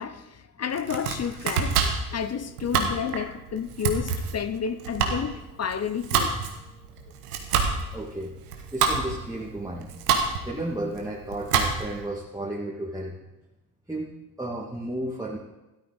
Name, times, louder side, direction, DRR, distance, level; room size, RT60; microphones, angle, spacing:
voice 1, 0.0-1.8 2.1-6.4, left 7 dB, 35° left, 0.8 m, -31 dB
Domestic sounds home sounds, 0.7-12.1, right 6 dB, 90° right, 1.3 m, -28 dB
voice 2, 7.6-8.3 8.7-10.0 10.4-13.2 13.9-14.1 14.4-15.4, right 1 dB, 10° right, 2.2 m, -33 dB
13.0 x 11.5 x 4.1 m
hypercardioid pair, 55°, 45 cm